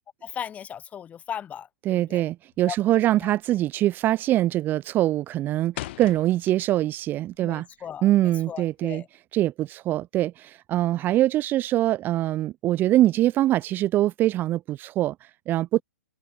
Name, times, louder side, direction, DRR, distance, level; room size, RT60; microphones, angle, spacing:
voice 1, 0.2-2.2 2.7-3.3 7.4-9.1, left 9 dB, 15° left, 2.4 m, -38 dB
voice 2, 1.9-7.7 8.0-9.0 9.3-15.8, right 14 dB, 25° right, 0.7 m, -23 dB
sound 1, 2.5-2.9 3.2-3.6 3.9-4.3 4.7-7.0 7.3-8.8, left 17 dB, 45° left, 1.4 m, -40 dB
open air
figure-of-eight pair, 120°, 9 cm